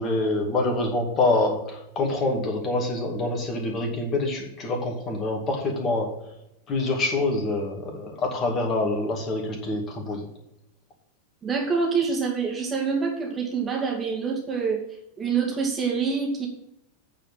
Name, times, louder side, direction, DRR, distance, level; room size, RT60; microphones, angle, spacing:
voice 1, 0.0-6.1 6.7-10.3, left 2 dB, 25° left, 2 dB, 2.3 m, -26 dB
voice 2, 11.4-14.8 15.2-16.5, right 5 dB, 20° right, 0 dB, 2.3 m, -26 dB
8.8 x 4.9 x 7.4 m, 0.80 s
figure-of-eight pair, 90°, 0 cm